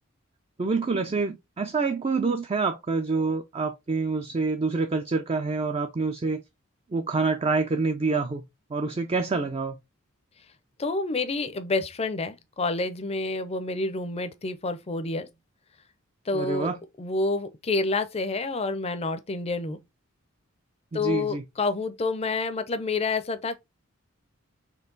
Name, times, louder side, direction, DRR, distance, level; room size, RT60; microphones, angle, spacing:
voice 1, 0.6-6.4 6.9-8.4 8.7-9.8 16.3-16.8 20.9-21.4, right 4 dB, 25° right, 0.4 m, -27 dB
voice 2, 10.8-15.3 16.3-16.7 17.0-19.8 20.9-23.6, left 3 dB, 30° left, 0.5 m, -28 dB
4.5 x 3.1 x 3.8 m
head